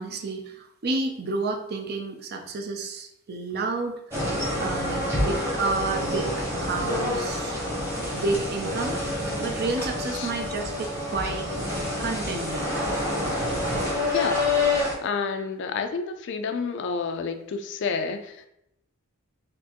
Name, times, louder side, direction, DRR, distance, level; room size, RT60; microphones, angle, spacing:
voice 1, 0.0-4.0 4.6-7.6 8.1-9.0 9.4-11.5 12.0-12.7, right 3 dB, 45° right, 4 dB, 0.5 m, -30 dB
sound 1, 4.1-14.9, left 2 dB, 10° right, 1.0 m, -27 dB
voice 2, 5.0-5.5 10.1-10.3 14.1-14.6 15.0-18.5, left 5 dB, 55° left, 8 dB, 0.4 m, -30 dB
4.2 x 2.6 x 2.9 m, 0.78 s
head